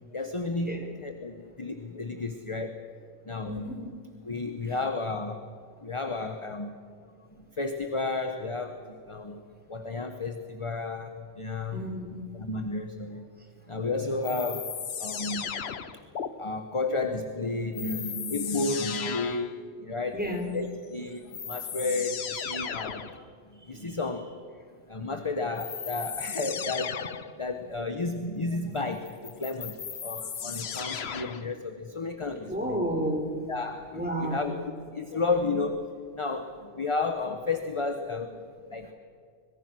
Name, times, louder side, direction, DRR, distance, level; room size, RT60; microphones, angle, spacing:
voice 1, 0.1-2.8 3.2-3.6 4.2-5.5 5.8-6.8 7.4-9.4 9.7-11.8 12.1-13.3 13.7-14.7 15.0-15.7 16.4-24.4 24.9-32.5 33.5-38.4 38.7-38.9, left 3 dB, 25° left, 7 dB, 1.1 m, -32 dB
voice 2, 3.4-4.0 4.7-4.8 11.7-12.2 20.1-20.5 23.8-24.0 32.4-33.4 33.9-34.5 38.8-38.9, right 1 dB, 5° right, 2 dB, 3.8 m, -32 dB
sound 1, 14.2-16.3 17.7-19.6 20.8-20.9 21.3-23.2 25.6-27.4 29.1-31.5, left 7 dB, 60° left, 1.2 m, -35 dB
25.0 x 22.5 x 6.3 m, 2.1 s
omnidirectional pair, 1.2 m